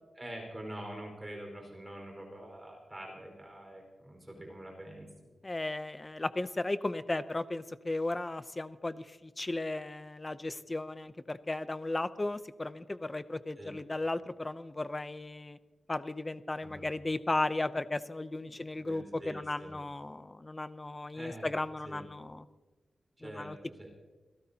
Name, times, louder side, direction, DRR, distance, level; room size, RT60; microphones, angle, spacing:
voice 1, 0.2-5.1 13.6-13.8 16.6-16.9 18.5-19.8 21.1-21.5 21.8-22.1 23.2-23.9, right 1 dB, 15° right, 1 dB, 4.8 m, -45 dB
voice 2, 5.4-15.6 15.9-22.5 23.2-23.6, left 2 dB, 20° left, 12 dB, 0.6 m, -35 dB
28.0 x 17.5 x 2.9 m, 1.2 s
wide cardioid pair, 165°, 0 cm